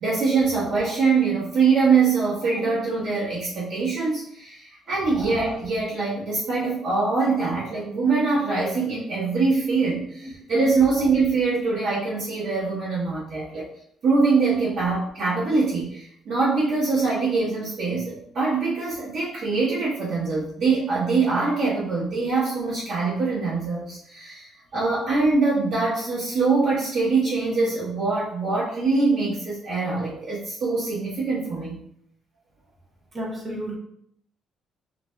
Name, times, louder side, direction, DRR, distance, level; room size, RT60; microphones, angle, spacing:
voice 1, 0.0-13.7 14.0-31.8, right 4 dB, 55° right, -10 dB, 1.2 m, -23 dB
voice 2, 33.1-33.8, right 1 dB, 25° right, -1 dB, 0.8 m, -32 dB
6.8 x 2.6 x 2.2 m, 0.70 s
cardioid pair, 150°, 0 cm